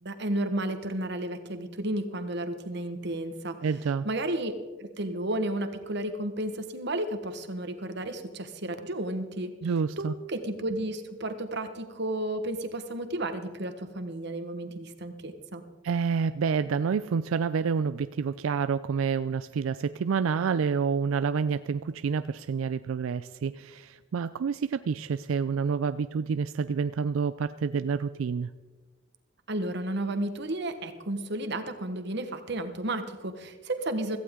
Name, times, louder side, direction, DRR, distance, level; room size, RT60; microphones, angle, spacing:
voice 1, 0.0-3.6 4.0-4.5 4.8-9.5 10.0-15.6 29.5-34.2, right 1 dB, 60° right, 8 dB, 1.3 m, -32 dB
voice 2, 3.6-4.1 9.6-10.1 15.8-28.5, right 6 dB, 90° right, 13 dB, 0.4 m, -28 dB
17.0 x 14.5 x 3.7 m, 1.3 s
head